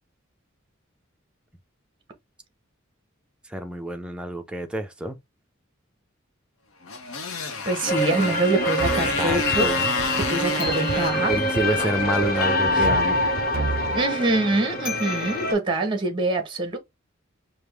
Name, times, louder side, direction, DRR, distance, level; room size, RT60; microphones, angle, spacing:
voice 1, 3.5-5.1 9.2-9.9 11.2-13.2, right 1 dB, 5° right, 0.5 m, -28 dB
Motorcycle, 6.8-13.4, left 4 dB, 75° left, 0.8 m, -30 dB
voice 2, 7.7-9.7 10.2-11.3 12.8-12.9 13.9-16.8, right 2 dB, 25° right, 1.0 m, -24 dB
sound 1, 7.9-15.5, left 1 dB, 45° left, 1.0 m, -25 dB
sound 2, 8.8-14.1, right 3 dB, 50° right, 0.7 m, -32 dB
5.1 x 2.2 x 3.3 m
head